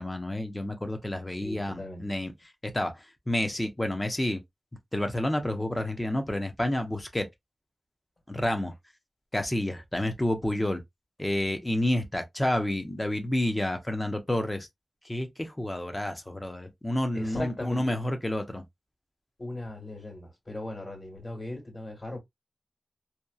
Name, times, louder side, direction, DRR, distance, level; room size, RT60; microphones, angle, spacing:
voice 1, 0.0-2.3 2.7-4.4 4.9-7.3 8.3-8.7 9.3-10.8 11.2-14.7 15.0-18.6, left 1 dB, 20° left, 0.6 m, -29 dB
voice 2, 1.3-2.0 17.1-18.0 19.4-22.2, left 1 dB, 45° left, 1.6 m, -38 dB
2.8 x 2.3 x 2.3 m
wide cardioid pair, 85°, 0 cm